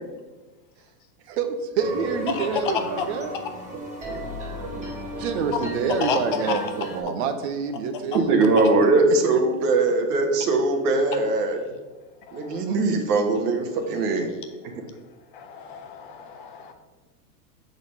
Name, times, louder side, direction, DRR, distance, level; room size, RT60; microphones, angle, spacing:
voice 1, 1.3-3.3 4.7-4.9 5.2-8.4 9.3-9.4, right 5 dB, 40° right, 7 dB, 0.7 m, -27 dB
sound 1, 1.8-7.0, right 1 dB, 15° right, 1.0 m, -35 dB
voice 2, 8.1-11.6 12.3-14.3 14.7-14.8, right 3 dB, 70° right, 4 dB, 1.4 m, -21 dB
voice 3, 15.3-16.7, left 6 dB, 35° left, 6 dB, 0.5 m, -32 dB
6.4 x 4.1 x 5.3 m, 1.2 s
supercardioid pair, 170°, 49 cm